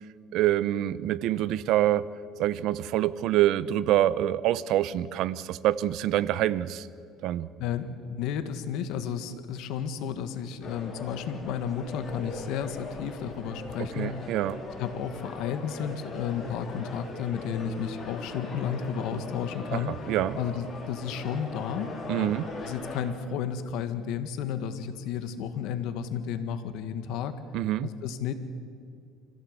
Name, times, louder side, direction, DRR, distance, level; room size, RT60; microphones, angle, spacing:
voice 1, 0.3-2.1 2.4-6.9 7.2-7.5 13.8-14.6 19.7-20.4 22.1-22.4 27.5-27.9, right 13 dB, 65° right, 17 dB, 0.7 m, -26 dB
voice 2, 7.6-14.3 14.8-22.3 22.6-27.4 27.8-28.3, left 8 dB, 70° left, 10 dB, 1.6 m, -32 dB
sound 1, 10.6-23.0, left 2 dB, 25° left, 4.3 m, -40 dB
25.0 x 15.5 x 8.1 m, 2.4 s
cardioid pair, 135°, 0 cm